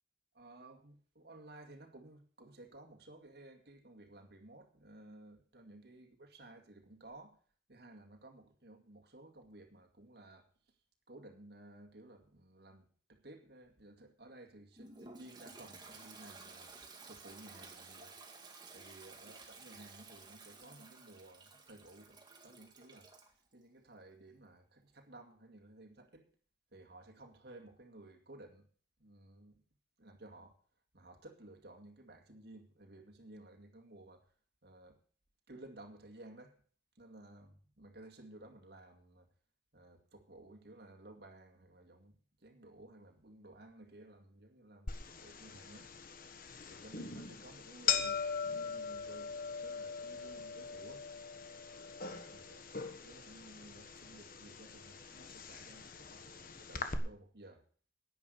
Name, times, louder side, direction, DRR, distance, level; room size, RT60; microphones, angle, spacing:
voice 1, 0.3-7.4 7.7-10.5 11.1-16.7 17.1-18.1 18.7-23.1 23.5-26.3 26.7-28.7 29.0-29.6 30.0-30.6 30.9-34.3 34.6-35.0 35.5-36.6 37.0-39.3 39.7-46.3 46.7-51.1 52.0-52.7 53.0-57.7, right 2 dB, 65° right, 2.2 m, -56 dB
Toilet flush, 14.8-23.3, right 3 dB, 25° right, 2.1 m, -54 dB
sound 1, 44.9-57.0, left 6 dB, 50° left, 1.4 m, -41 dB
10.5 x 10.0 x 6.6 m
head